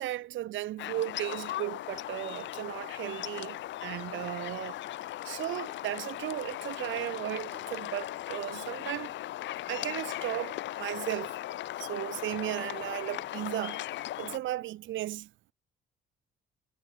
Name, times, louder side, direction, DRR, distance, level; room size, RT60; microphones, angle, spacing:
voice 1, 0.0-4.8 5.2-9.1 9.7-11.3 11.8-15.3, right 14 dB, 75° right, 0.7 m, -35 dB
sound 1, 0.8-14.4, left 14 dB, 65° left, 0.5 m, -38 dB
cardioid pair, 90°, 20 cm